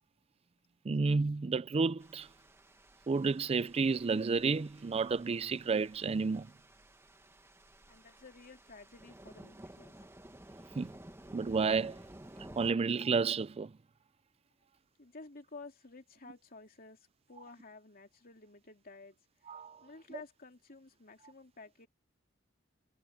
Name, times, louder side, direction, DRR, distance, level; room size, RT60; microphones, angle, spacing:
voice 1, 0.9-2.3 3.1-6.5 10.8-10.9 11.3-12.0 12.6-13.7 19.5-19.8, right 4 dB, 30° right, 0.4 m, -31 dB
sound 1, 2.0-12.7, right 1 dB, 15° right, 1.6 m, -54 dB
voice 2, 7.9-10.0 15.0-19.2 19.4-19.5 19.8-21.9, left 3 dB, 45° left, 2.9 m, -53 dB
head